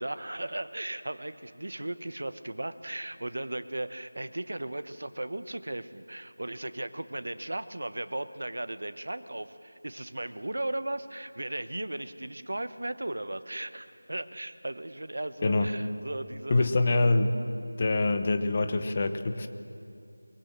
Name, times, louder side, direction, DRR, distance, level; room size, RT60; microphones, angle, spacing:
voice 1, 0.0-16.7, right 1 dB, 60° right, 12 dB, 1.2 m, -36 dB
voice 2, 16.5-17.4 17.8-19.5, left 2 dB, 20° left, 9 dB, 0.9 m, -25 dB
23.0 x 22.0 x 7.6 m, 2.6 s
figure-of-eight pair, 180°, 0 cm